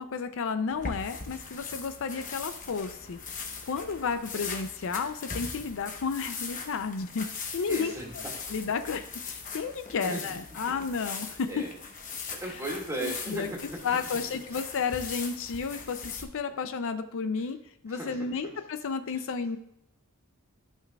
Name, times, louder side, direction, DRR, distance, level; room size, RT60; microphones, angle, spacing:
voice 1, 0.0-3.2 3.7-7.9 8.5-11.5 13.0-13.5 13.8-17.6 17.8-19.6, left 5 dB, 65° left, 10 dB, 0.5 m, -32 dB
sound 1, 0.7-16.2, left 5 dB, 35° left, 1.0 m, -40 dB
voice 2, 7.7-8.3 10.0-10.3 11.5-11.7 12.3-13.8 14.0-14.6 17.4-17.5 17.9-18.4 19.1-19.2, right 1 dB, 15° right, -1 dB, 2.0 m, -38 dB
14.0 x 5.8 x 2.3 m, 0.82 s
head